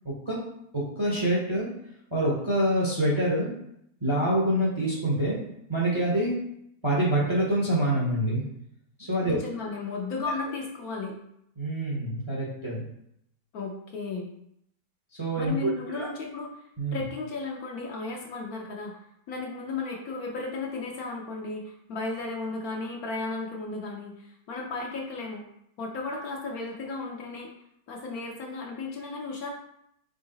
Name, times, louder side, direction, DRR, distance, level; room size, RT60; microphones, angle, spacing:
voice 1, 0.7-1.7 2.1-3.5 4.0-5.4 5.7-6.4 6.8-8.4 9.0-9.4 11.6-12.8 15.2-16.1 16.8-17.0, right 1 dB, 25° right, -5 dB, 0.7 m, -26 dB
voice 2, 9.2-11.1 13.5-14.3 15.4-16.6 16.9-25.4 25.8-27.5 27.9-29.5, left 3 dB, 65° left, 0 dB, 1.1 m, -34 dB
3.9 x 3.1 x 3.9 m, 0.75 s
omnidirectional pair, 1.8 m